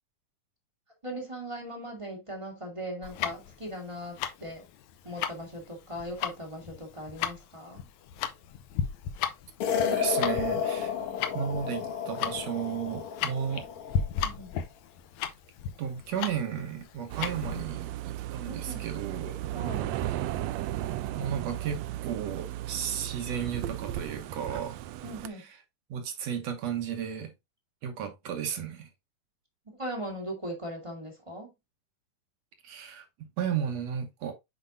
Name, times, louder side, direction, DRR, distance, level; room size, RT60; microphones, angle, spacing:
voice 1, 1.0-4.6 5.0-7.8 14.1-14.5 18.5-18.9 19.5-19.9 25.0-25.5 29.7-31.5, equal, 15° right, 1.0 m, -39 dB
Tick-tock, 3.0-17.7, left 8 dB, 75° left, 1.8 m, -35 dB
sound 1, 9.6-14.1, left 7 dB, 60° left, 1.7 m, -31 dB
voice 2, 9.9-10.9 11.3-13.7 15.8-19.4 21.1-24.8 25.3-25.6 25.9-27.3 27.8-28.9 32.6-33.1 33.4-34.3, right 8 dB, 65° right, 2.2 m, -34 dB
sound 2, 17.1-25.3, right 13 dB, 85° right, 1.5 m, -35 dB
7.8 x 5.3 x 2.6 m
omnidirectional pair, 3.6 m